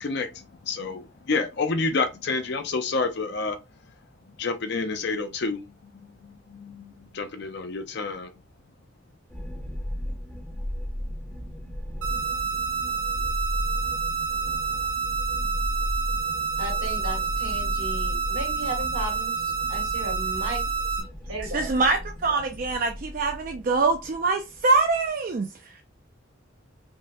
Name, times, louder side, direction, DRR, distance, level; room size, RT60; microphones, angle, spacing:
voice 1, 0.0-3.6 4.4-5.6 6.2-8.3, left 3 dB, 55° left, 0.5 m, -29 dB
sound 1, 9.3-25.1, equal, 5° left, 0.6 m, -34 dB
sound 2, 12.0-21.0, right 6 dB, 65° right, 1.2 m, -29 dB
voice 2, 16.6-20.9 21.3-21.8, right 1 dB, 80° right, 1.7 m, -35 dB
voice 3, 21.5-25.5, right 3 dB, 40° right, 0.3 m, -24 dB
3.5 x 2.1 x 2.6 m
head